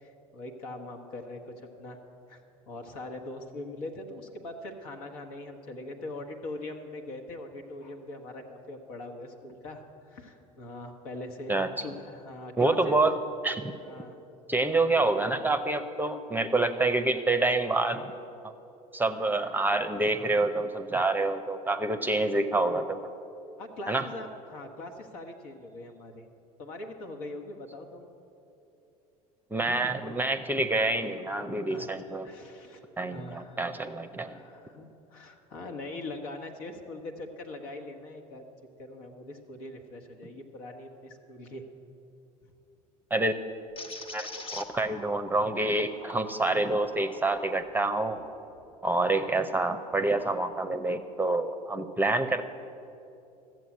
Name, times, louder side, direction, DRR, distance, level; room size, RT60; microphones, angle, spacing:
voice 1, 0.0-2.0 2.3-2.4 2.7-13.0 13.8-14.2 23.6-26.3 26.6-28.0 31.7-31.9 32.2-34.8 35.1-38.4 38.8-41.6, left 2 dB, 70° left, 3 dB, 1.5 m, -42 dB
voice 2, 12.6-13.8 14.5-18.1 18.4-18.5 18.9-23.1 23.9-24.1 29.5-32.3 33.0-34.4 43.1-43.3 44.1-48.2 48.8-52.5, right 2 dB, 10° right, 9 dB, 0.7 m, -27 dB
sound 1, 43.8-49.3 49.8-51.0, left 2 dB, 30° left, 1.3 m, -46 dB
13.5 x 7.8 x 8.6 m, 2.8 s
hypercardioid pair, 75°, 20 cm